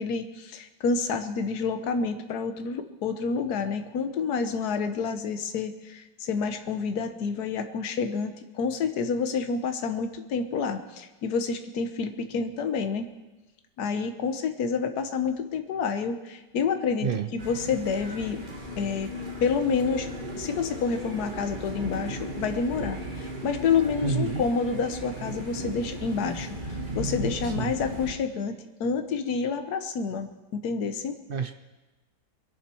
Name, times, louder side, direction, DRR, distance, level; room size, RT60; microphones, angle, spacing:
voice 1, 0.0-13.1 13.8-18.4 18.8-19.1 19.4-20.1 20.4-31.2, left 5 dB, 70° left, 8 dB, 1.5 m, -29 dB
sound 1, 17.4-28.1, equal, 30° right, 1.7 m, -36 dB
voice 2, 24.0-24.5 27.4-27.7 31.3-31.5, right 6 dB, 60° right, 8 dB, 0.5 m, -29 dB
23.0 x 10.5 x 4.5 m, 1.1 s
omnidirectional pair, 1.8 m